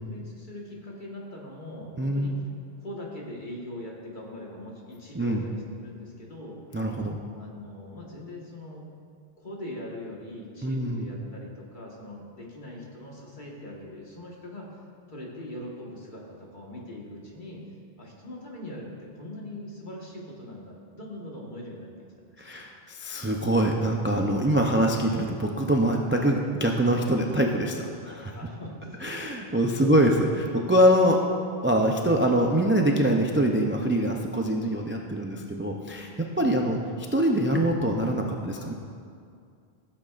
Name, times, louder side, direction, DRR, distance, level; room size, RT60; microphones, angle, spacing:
voice 1, 0.0-2.3 2.8-6.6 7.3-8.9 9.4-14.8 15.1-17.6 18.0-21.9 22.2-22.7 28.3-29.4 29.8-29.9 36.4-36.8, left 1 dB, 50° left, -3 dB, 1.7 m, -41 dB
voice 2, 2.0-2.4 5.1-5.4 6.7-7.2 10.6-11.0 22.4-28.3 29.0-31.3 31.6-36.8 37.1-38.7, right 1 dB, 20° right, 1 dB, 0.4 m, -24 dB
15.5 x 7.7 x 2.5 m, 2.3 s
omnidirectional pair, 1.0 m